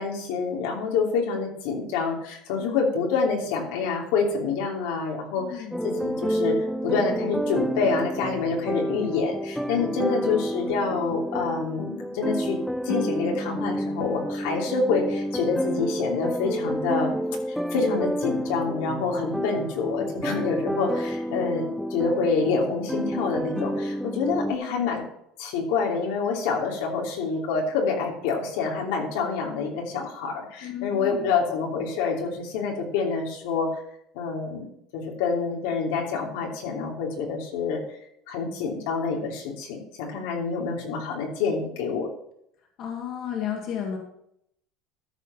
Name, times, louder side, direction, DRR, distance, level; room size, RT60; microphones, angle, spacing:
voice 1, 0.0-6.6 6.8-12.6 12.8-17.1 17.7-25.0 25.4-33.8 34.1-34.6 34.9-37.8 38.3-42.1, left 4 dB, 85° left, 0 dB, 2.9 m, -27 dB
voice 2, 5.4-5.8 10.1-10.2 19.2-19.6 24.4-24.9 30.6-31.3 42.8-44.0, left 9 dB, 45° left, 1 dB, 1.9 m, -34 dB
sound 1, 5.7-24.5, equal, ahead, 0.3 m, -30 dB
13.5 x 5.1 x 5.6 m, 0.73 s
cardioid pair, 160°, 0 cm